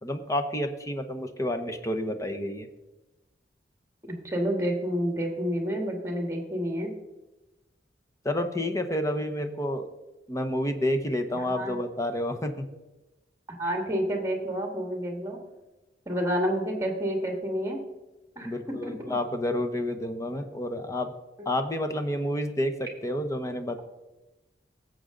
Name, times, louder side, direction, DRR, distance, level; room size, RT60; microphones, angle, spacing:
voice 1, 0.0-2.7 8.2-9.9 10.3-12.6 18.4-21.1 21.5-23.8, left 1 dB, 20° left, 7 dB, 0.9 m, -29 dB
voice 2, 4.0-6.9 11.3-11.8 13.6-15.4 16.1-17.8 18.4-19.1 21.4-21.5, equal, 15° right, 2 dB, 1.9 m, -29 dB
17.0 x 7.8 x 3.8 m, 1.1 s
head